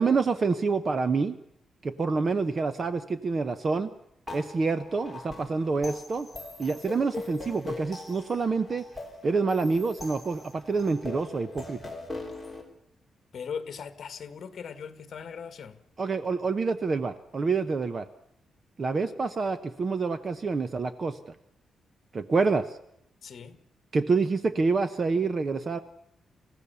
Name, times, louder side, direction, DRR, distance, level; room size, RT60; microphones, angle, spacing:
voice 1, 0.0-1.4 1.8-3.9 4.3-6.3 6.6-8.8 9.2-11.8 16.0-18.1 18.8-21.2 22.1-22.7 23.9-25.8, right 4 dB, 30° right, 12 dB, 0.8 m, -27 dB
sound 1, 4.3-12.6, left 2 dB, ahead, 4.2 m, -41 dB
voice 2, 13.3-15.8 23.2-23.6, left 6 dB, 45° left, 11 dB, 1.7 m, -39 dB
28.5 x 15.5 x 7.0 m, 0.77 s
wide cardioid pair, 170°, 0 cm